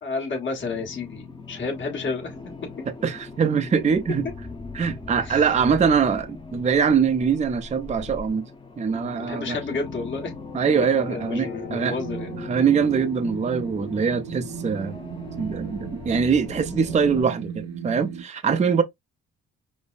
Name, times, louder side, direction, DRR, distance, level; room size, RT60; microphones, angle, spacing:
voice 1, 0.0-2.3 5.2-5.4 9.2-10.3 11.1-12.3, left 4 dB, 40° left, 1.4 m, -31 dB
sound 1, 0.6-17.2, left 3 dB, 15° left, 0.8 m, -39 dB
voice 2, 3.0-4.3 4.7-8.5 8.8-9.6 10.5-11.9 12.5-15.0 15.4-18.8, right 6 dB, 25° right, 0.5 m, -23 dB
drone-bell-ambience-glitchy, 11.8-18.2, right 8 dB, 60° right, 0.7 m, -36 dB
5.1 x 2.1 x 2.4 m
cardioid pair, 90°, 30 cm